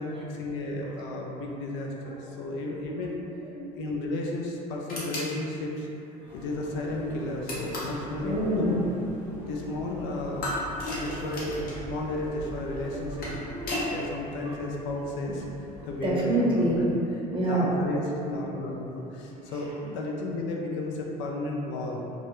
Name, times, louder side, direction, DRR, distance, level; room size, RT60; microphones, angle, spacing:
voice 1, 0.0-3.2 3.7-5.9 6.3-8.8 9.5-13.3 13.9-15.4 15.8-16.2 16.5-16.7 17.4-22.1, left 2 dB, 65° left, -1 dB, 0.4 m, -33 dB
voice 2, 2.1-2.7 3.5-3.7 6.2-6.3 8.2-8.9 9.3-9.5 12.7-13.7 14.4-14.6 16.0-17.7 19.5-19.6, right 1 dB, 25° right, -6 dB, 0.7 m, -28 dB
sound 1, 4.9-5.3 7.5-8.0 10.4-11.8 12.9-13.9, left 1 dB, 45° left, 0.8 m, -34 dB
sound 2, 6.3-17.0, equal, 10° left, 0.8 m, -44 dB
2.2 x 2.0 x 3.0 m, 2.9 s
supercardioid pair, 85°, 21 cm